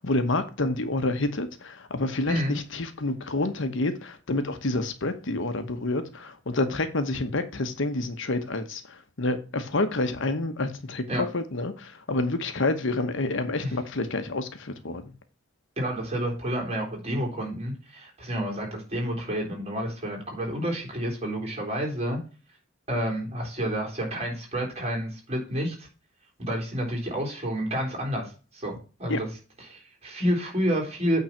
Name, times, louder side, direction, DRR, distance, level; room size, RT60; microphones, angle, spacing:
voice 1, 0.0-15.2 29.1-29.2, left 2 dB, 65° left, 1.0 m, -28 dB
voice 2, 15.8-22.2 22.9-25.9 26.4-29.3 29.7-31.2, equal, 35° right, 3.7 m, -29 dB
8.8 x 3.9 x 5.7 m
head